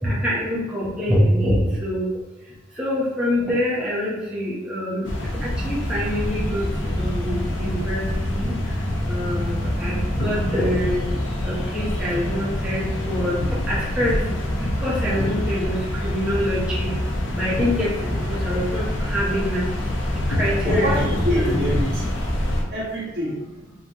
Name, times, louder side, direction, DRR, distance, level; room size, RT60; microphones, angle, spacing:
voice 1, 0.0-2.1 2.8-5.1 5.4-6.7 7.0-8.0 8.3-8.5 9.1-11.0 11.4-13.4 13.7-14.2 14.6-15.8 16.0-16.9 17.3-19.6 20.4-21.0 21.4-21.5, equal, 5° right, -8 dB, 0.9 m, -25 dB
sound 1, 5.0-22.6, left 1 dB, 80° left, 1.0 m, -25 dB
voice 2, 20.6-22.1 22.7-23.6, equal, 60° right, -5 dB, 1.4 m, -26 dB
5.4 x 3.0 x 2.9 m, 1.1 s
head